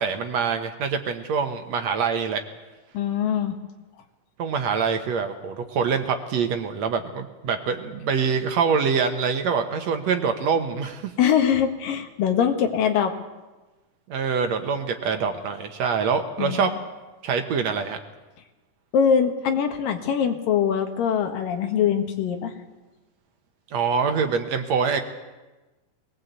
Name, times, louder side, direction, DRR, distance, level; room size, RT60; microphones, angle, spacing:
voice 1, 0.0-2.4 4.4-11.1 14.1-16.7 17.2-18.0 23.7-25.0, right 6 dB, 60° right, 6 dB, 2.2 m, -25 dB
voice 2, 2.9-3.6 11.2-13.1 16.4-16.7 18.9-22.5, left 8 dB, 85° left, 5 dB, 3.3 m, -22 dB
21.5 x 18.5 x 8.2 m, 1.2 s
omnidirectional pair, 3.8 m